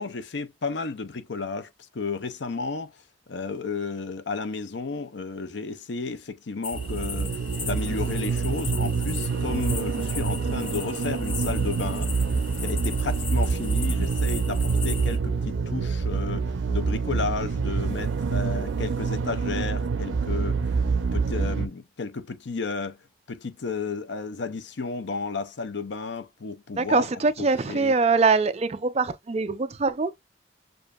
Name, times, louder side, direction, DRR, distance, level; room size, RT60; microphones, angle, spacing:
voice 1, 0.0-3.0 3.3-12.1 12.6-20.7 21.1-23.0 23.3-27.0 27.4-27.9, left 4 dB, 70° left, 0.6 m, -33 dB
sound 1, 6.6-15.2, left 6 dB, 30° left, 0.7 m, -38 dB
sound 2, 6.7-21.7, right 5 dB, 85° right, 0.5 m, -26 dB
voice 2, 26.7-30.1, right 4 dB, 35° right, 0.5 m, -23 dB
6.9 x 2.5 x 2.4 m
head